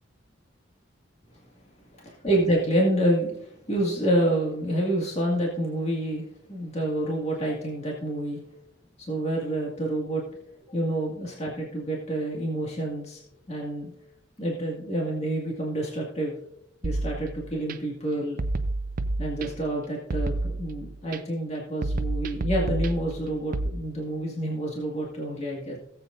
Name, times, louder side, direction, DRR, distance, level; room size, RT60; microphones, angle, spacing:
voice 1, 2.2-8.4 9.0-10.2 10.7-13.2 13.5-13.9 14.4-16.4 16.8-18.4 19.2-25.8, right 1 dB, 35° left, -2 dB, 2.0 m, -28 dB
sound 1, 16.8-17.7 18.4-19.7 20.1-21.2 21.8-23.7, right 2 dB, 50° right, 0.5 m, -30 dB
18.0 x 8.0 x 2.6 m, 0.72 s
head